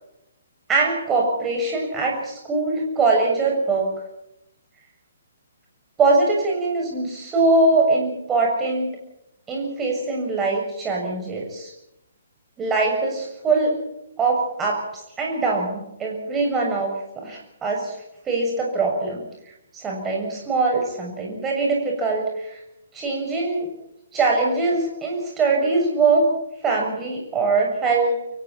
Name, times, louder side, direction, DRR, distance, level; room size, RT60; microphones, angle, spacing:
voice 1, 0.7-3.9 6.0-8.9 9.5-11.7 12.6-13.7 14.2-14.8 15.2-17.9 18.3-19.2 19.7-22.6 22.9-23.7 24.1-26.3 26.6-28.2, right 3 dB, 15° right, -1 dB, 7.2 m, -22 dB
30.0 x 24.5 x 4.5 m, 0.85 s
figure-of-eight pair, 130°, 0 cm